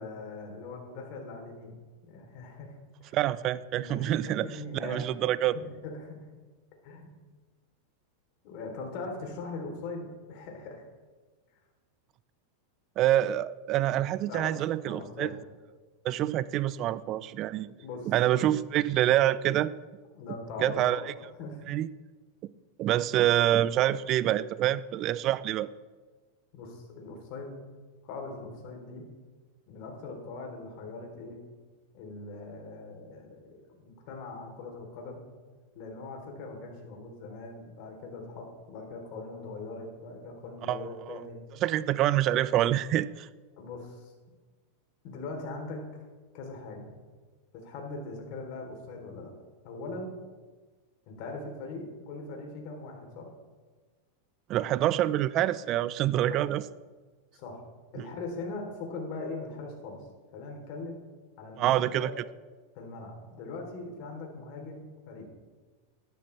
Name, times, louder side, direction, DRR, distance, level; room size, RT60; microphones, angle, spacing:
voice 1, 0.0-2.7 3.0-3.2 3.8-5.1 5.5-6.2 6.8-7.2 8.4-10.9 14.3-14.6 14.9-15.4 17.8-18.1 20.1-21.1 21.4-21.6 26.5-27.5 28.0-29.1 29.7-31.4 31.9-35.2 35.8-41.4 43.6-44.1 45.0-45.8 46.3-47.0 47.5-49.3 49.6-50.1 51.1-53.3 56.3-56.5 57.3-57.6 57.9-60.0 60.3-61.0 61.4-62.1 62.7-65.2, left 3 dB, 55° left, 1 dB, 3.5 m, -41 dB
voice 2, 3.1-4.5 4.8-5.6 13.0-15.3 16.0-17.7 18.1-19.7 20.6-21.0 21.7-21.9 22.8-25.7 40.7-41.1 41.6-43.3 54.5-56.6 61.6-62.1, right 13 dB, 40° right, 17 dB, 0.5 m, -26 dB
13.0 x 12.0 x 3.4 m, 1.4 s
hypercardioid pair, 120°, 0 cm